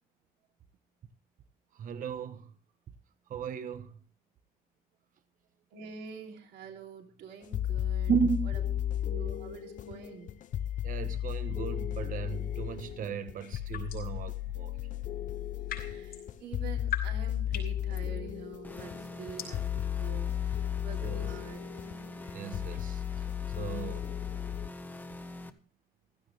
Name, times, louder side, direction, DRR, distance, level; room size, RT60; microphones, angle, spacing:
voice 1, 1.8-2.5 3.3-3.9 8.1-8.9 10.8-14.7 21.0-21.3 22.3-23.3 23.6-24.1, right 6 dB, 50° right, 1.2 m, -35 dB
voice 2, 5.7-8.1 8.5-8.6 9.1-10.4 15.8-21.7, right 6 dB, 80° right, 3.1 m, -46 dB
sound 1, 7.4-24.7, left 11 dB, 50° left, 0.7 m, -34 dB
sound 2, 13.4-14.2 15.3-23.0, left 9 dB, 65° left, 5.0 m, -44 dB
sound 3, 18.6-25.5, left 2 dB, 10° left, 1.2 m, -44 dB
15.5 x 13.5 x 3.3 m
cardioid pair, 110°, 17 cm